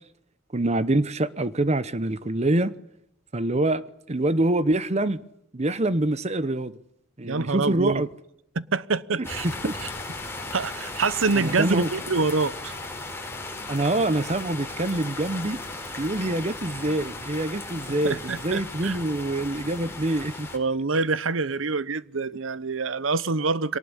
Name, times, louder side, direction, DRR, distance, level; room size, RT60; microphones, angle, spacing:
voice 1, 0.5-2.7 3.3-5.2 5.5-6.7 7.2-8.1 9.2-9.7 11.3-11.9 13.7-15.6 16.0-20.5, right 1 dB, 35° right, 0.9 m, -25 dB
voice 2, 7.3-8.0 8.5-9.5 10.5-12.8 18.0-19.0 20.5-23.8, right 4 dB, 90° right, 0.9 m, -26 dB
sound 1, 9.2-20.6, left 2 dB, 15° left, 4.2 m, -36 dB
23.0 x 19.0 x 9.9 m
head